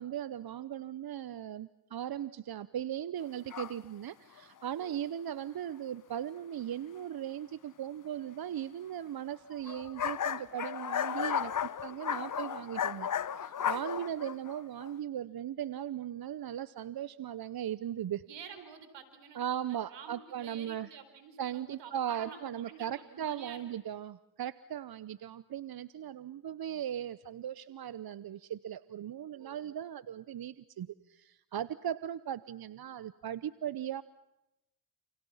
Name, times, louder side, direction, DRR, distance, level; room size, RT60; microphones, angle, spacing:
voice 1, 0.0-18.2 19.3-20.9 21.4-34.0, right 10 dB, 55° right, 16 dB, 0.9 m, -38 dB
sound 1, 3.5-3.8 4.4-4.5 9.5-14.9, left 8 dB, 45° left, 1.0 m, -34 dB
voice 2, 13.7-14.0 18.2-23.6 29.4-29.7, right 7 dB, 85° right, 10 dB, 4.4 m, -50 dB
29.5 x 29.0 x 5.7 m, 0.93 s
supercardioid pair, 55°, 42 cm